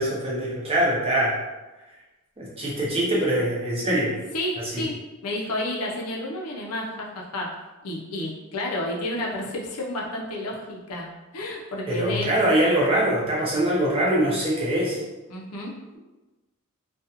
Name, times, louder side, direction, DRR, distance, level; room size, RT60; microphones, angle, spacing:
voice 1, 0.0-1.4 2.4-4.1 4.6-4.8 11.9-15.0, right 1 dB, 25° right, -5 dB, 0.7 m, -23 dB
voice 2, 4.3-5.0 5.2-7.5 7.8-12.3 15.3-15.7, left 1 dB, 75° left, -2 dB, 0.6 m, -31 dB
2.4 x 2.3 x 2.7 m, 1.1 s
head